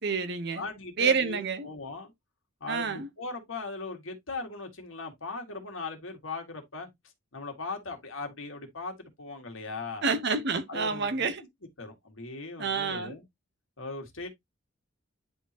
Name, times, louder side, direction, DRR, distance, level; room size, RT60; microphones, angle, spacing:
voice 1, 0.0-0.6 1.0-1.7 2.7-3.1 10.0-11.4 12.6-13.1, right 5 dB, 60° right, 1.1 m, -28 dB
voice 2, 0.6-2.1 2.6-6.9 7.3-10.0 10.7-11.3 11.8-13.2 13.8-14.3, left 3 dB, 75° left, 2.0 m, -39 dB
10.0 x 3.7 x 2.9 m
head